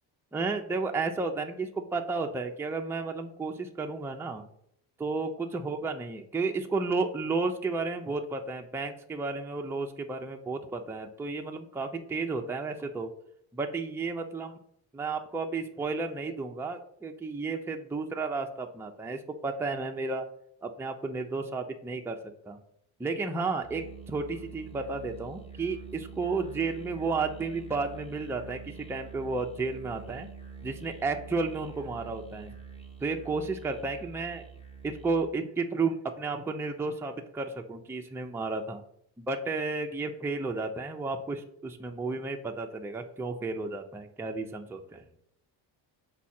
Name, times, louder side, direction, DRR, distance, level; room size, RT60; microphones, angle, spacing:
voice 1, 0.3-4.4 5.0-13.1 13.5-14.5 14.9-20.2 20.6-22.2 22.5-22.6 23.0-30.3 30.6-32.5 33.0-34.4 34.8-38.8 39.2-45.0, right 3 dB, 5° right, 3 dB, 0.5 m, -32 dB
Musical instrument, 23.6-35.4, right 6 dB, 10° left, 1.1 m, -46 dB
6.1 x 4.7 x 4.3 m, 0.73 s
cardioid pair, 105°, 48 cm